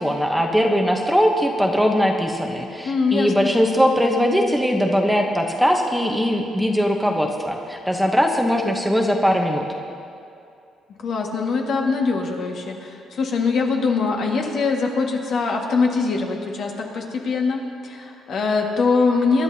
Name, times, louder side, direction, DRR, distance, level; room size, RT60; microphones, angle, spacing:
voice 1, 0.0-9.6, equal, ahead, 2 dB, 0.9 m, -20 dB
voice 2, 2.8-3.5 11.0-19.4, left 4 dB, 55° left, 1 dB, 1.7 m, -22 dB
24.5 x 12.0 x 2.8 m, 2.5 s
cardioid pair, 130°, 0 cm